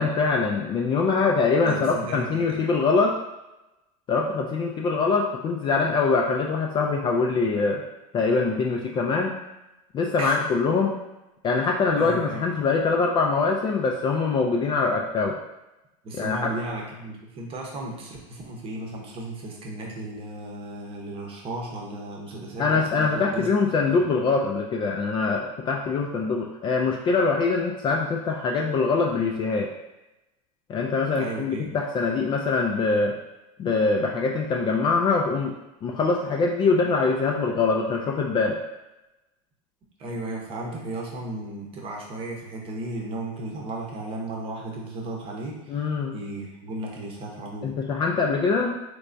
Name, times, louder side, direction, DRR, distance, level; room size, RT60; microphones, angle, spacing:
voice 1, 0.0-3.2 4.1-7.8 8.1-9.4 9.9-10.9 11.4-15.4 16.2-16.4 22.6-29.7 30.7-33.2 33.6-38.6 45.7-46.1 47.6-48.8, left 4 dB, 25° left, 0 dB, 0.3 m, -23 dB
voice 2, 1.6-2.6 10.2-10.4 11.6-12.4 16.0-24.0 31.1-31.7 40.0-47.7, right 1 dB, 35° right, -1 dB, 0.8 m, -35 dB
3.3 x 3.2 x 2.6 m, 0.97 s
supercardioid pair, 130°, 17 cm